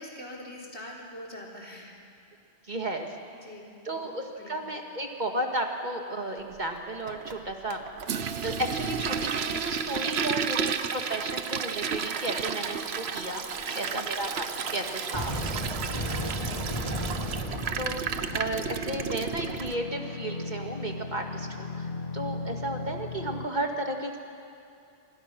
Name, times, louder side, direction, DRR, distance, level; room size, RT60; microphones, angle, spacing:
voice 1, 0.0-1.9 3.4-4.6 13.6-13.9 15.8-16.8, left 1 dB, 75° left, -3 dB, 4.1 m, -44 dB
voice 2, 2.7-3.1 3.9-7.8 8.4-13.4 13.7-15.5 17.8-24.2, right 1 dB, 40° right, 3 dB, 2.0 m, -33 dB
Toilet flush, 7.0-19.8, right 6 dB, 70° right, 1.1 m, -32 dB
sound 1, 11.8-23.5, left 4 dB, 50° left, 1.2 m, -40 dB
sound 2, 15.1-19.1, equal, 25° left, 3.4 m, -34 dB
26.0 x 25.0 x 6.2 m, 2.5 s
omnidirectional pair, 1.1 m